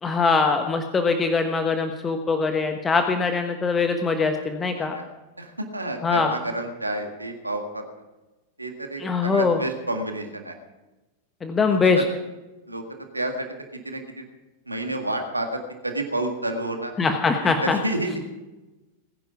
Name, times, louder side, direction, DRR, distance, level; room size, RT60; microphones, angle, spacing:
voice 1, 0.0-5.0 6.0-6.4 9.0-9.6 11.4-12.0 17.0-17.8, left 4 dB, 20° left, 6 dB, 1.2 m, -22 dB
voice 2, 4.6-5.1 5.4-7.8 8.6-10.5 11.6-12.1 12.7-12.8 13.1-14.2 14.7-16.9 17.4-18.2, right 1 dB, 85° right, 4 dB, 1.8 m, -30 dB
20.0 x 10.5 x 5.9 m, 1.1 s
figure-of-eight pair, 90°, 0 cm